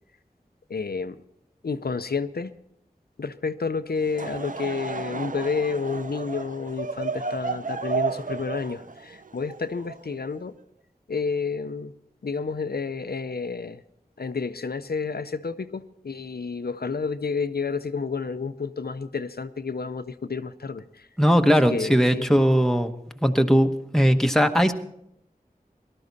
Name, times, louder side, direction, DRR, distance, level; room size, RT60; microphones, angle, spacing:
voice 1, 0.7-1.2 1.6-2.5 3.2-10.5 11.1-11.9 12.2-13.8 14.2-21.1 21.6-22.2, left 4 dB, 85° left, 10 dB, 0.6 m, -30 dB
Laughter / Crowd, 4.0-10.4, right 4 dB, 60° right, 0.5 m, -32 dB
voice 2, 21.2-22.9 23.2-24.7, equal, 5° left, 6 dB, 1.1 m, -19 dB
18.0 x 12.5 x 4.1 m, 0.77 s
wide cardioid pair, 40°, 16 cm